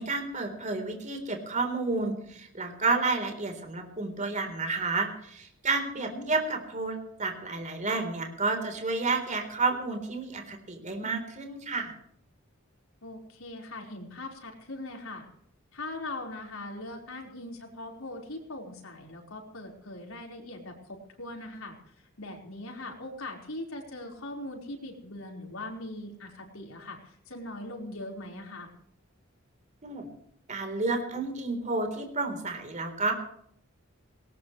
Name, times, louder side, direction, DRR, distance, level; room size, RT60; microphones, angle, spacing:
voice 1, 0.0-11.9 29.8-30.1 30.5-33.1, right 3 dB, 35° right, 5 dB, 3.8 m, -30 dB
voice 2, 5.9-6.3 13.0-15.3 15.7-28.7, left 2 dB, 80° left, 1 dB, 4.6 m, -41 dB
19.5 x 19.5 x 3.2 m, 0.69 s
head